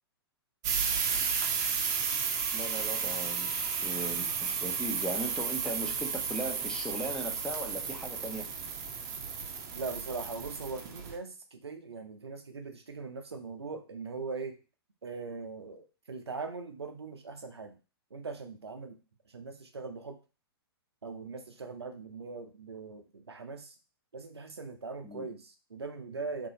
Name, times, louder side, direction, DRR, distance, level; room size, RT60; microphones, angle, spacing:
sound 1, 0.6-11.2, right 6 dB, 45° right, 0.6 m, -33 dB
voice 1, 2.5-8.5 25.0-25.3, right 1 dB, 5° left, 2 dB, 0.6 m, -38 dB
voice 2, 9.7-14.6 15.0-17.8 18.1-19.0 19.3-20.2 21.0-23.7 24.1-26.5, right 4 dB, 85° right, 6 dB, 0.6 m, -41 dB
3.0 x 2.6 x 2.7 m, 0.32 s
figure-of-eight pair, 115°, 13 cm